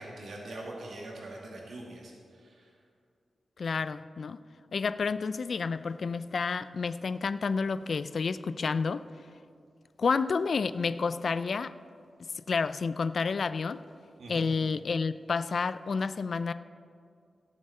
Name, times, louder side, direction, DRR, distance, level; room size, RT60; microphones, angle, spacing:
voice 1, 0.0-2.7 14.2-14.4, right 1 dB, 75° right, -2 dB, 1.9 m, -43 dB
voice 2, 3.6-4.4 4.7-9.0 10.0-11.7 12.2-13.8 14.3-16.5, left 5 dB, 60° left, 14 dB, 0.4 m, -30 dB
17.5 x 7.2 x 4.3 m, 2.3 s
wide cardioid pair, 110°, 0 cm